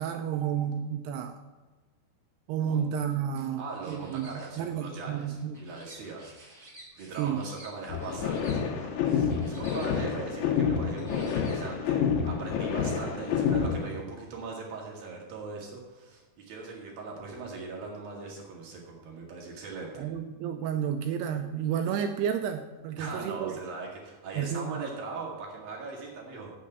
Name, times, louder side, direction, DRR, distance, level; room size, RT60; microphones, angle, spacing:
voice 1, 0.0-1.4 2.5-5.6 7.2-7.4 20.0-23.6 24.4-24.8, right 8 dB, 85° right, 7 dB, 2.3 m, -31 dB
sound 1, 3.1-4.5 4.9-8.6 9.0-10.2 10.8-11.9, right 1 dB, 10° right, 2.2 m, -52 dB
voice 2, 3.6-6.3 7.0-20.1 23.0-26.5, right 4 dB, 60° right, -2 dB, 3.3 m, -40 dB
sound 2, 7.9-13.9, left 7 dB, 85° left, 3.6 m, -28 dB
8.5 x 8.4 x 7.9 m, 1.3 s
omnidirectional pair, 5.3 m